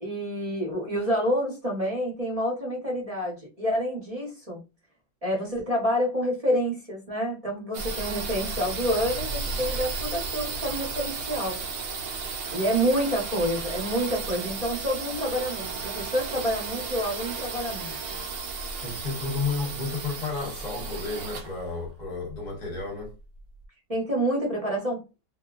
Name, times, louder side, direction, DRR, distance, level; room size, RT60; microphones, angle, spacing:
voice 1, 0.0-4.6 5.2-11.6 12.5-17.9 23.9-25.0, equal, 35° right, 0.6 m, -28 dB
sound 1, 7.7-23.4, right 4 dB, 70° right, 0.9 m, -34 dB
voice 2, 18.8-23.1, left 4 dB, 40° left, 0.6 m, -32 dB
2.8 x 2.4 x 2.3 m
omnidirectional pair, 2.0 m